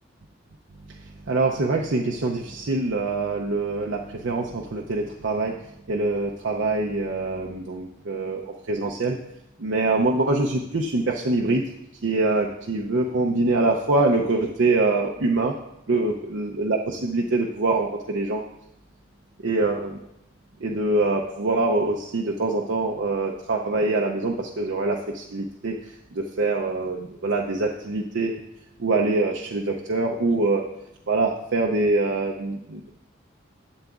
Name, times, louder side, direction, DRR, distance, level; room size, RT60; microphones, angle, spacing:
voice 1, 1.3-5.6 5.9-8.4 8.7-9.2 9.6-11.6 12.0-15.5 15.9-18.4 19.4-20.0 20.6-25.8 26.1-28.4 28.8-30.6 31.1-33.0, right 2 dB, 65° right, 0 dB, 0.6 m, -24 dB
11.5 x 7.9 x 2.4 m, 0.86 s
head